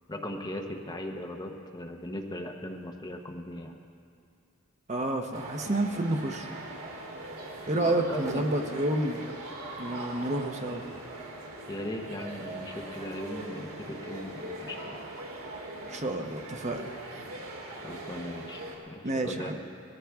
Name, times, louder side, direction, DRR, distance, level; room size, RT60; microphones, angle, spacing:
voice 1, 0.1-3.7 7.8-8.8 11.7-14.9 17.8-19.6, left 1 dB, 20° left, 3 dB, 0.9 m, -38 dB
voice 2, 4.9-6.5 7.7-9.2 9.8-10.9 15.9-16.9 19.0-19.6, right 1 dB, 35° right, 4 dB, 0.8 m, -29 dB
sound 1, 5.3-18.8, right 1 dB, 90° right, 2.3 m, -41 dB
20.0 x 14.5 x 3.5 m, 2.3 s
head